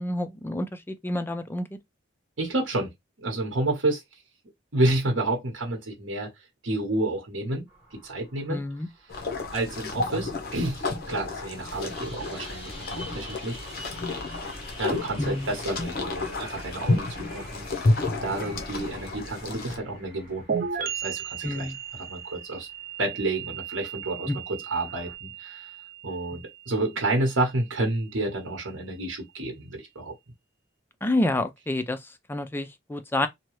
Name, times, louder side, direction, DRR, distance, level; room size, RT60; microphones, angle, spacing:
voice 1, 0.0-1.7 8.5-8.9 15.2-15.5 21.4-21.8 24.3-24.4 31.0-32.0 32.3-33.3, left 1 dB, 10° left, 0.3 m, -28 dB
voice 2, 2.4-2.9 3.2-4.0 4.7-6.3 6.6-7.6 7.9-8.6 9.5-13.6 14.8-21.7 22.0-22.7 23.0-25.7 26.0-30.1, right 2 dB, 75° right, 1.0 m, -30 dB
sound 1, 7.7-9.9 11.5-23.1 24.6-25.1, equal, 30° left, 1.4 m, -47 dB
sound 2, 9.1-19.8, left 2 dB, 50° left, 0.7 m, -31 dB
sound 3, 20.5-28.0, right 7 dB, 45° right, 0.5 m, -36 dB
2.8 x 2.2 x 3.0 m
head